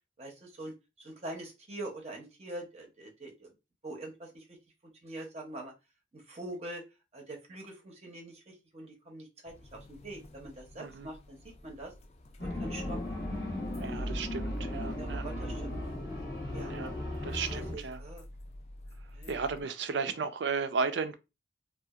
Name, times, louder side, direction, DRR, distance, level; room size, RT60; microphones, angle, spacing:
voice 1, 0.2-3.5 3.8-4.6 5.0-5.7 6.1-6.8 7.1-11.9 12.4-13.2 13.8-14.2 15.0-15.8 16.5-16.7 17.5-18.2 19.1-19.4, right 1 dB, 35° right, 0.7 m, -44 dB
sound 1, 9.5-19.6, left 1 dB, 35° left, 0.3 m, -49 dB
voice 2, 10.8-11.1 13.8-15.3 16.6-16.9 17.2-18.0 19.3-21.1, right 5 dB, 80° right, 0.4 m, -34 dB
sound 2, 12.4-17.8, left 1 dB, 60° left, 0.9 m, -36 dB
2.8 x 2.4 x 2.3 m
head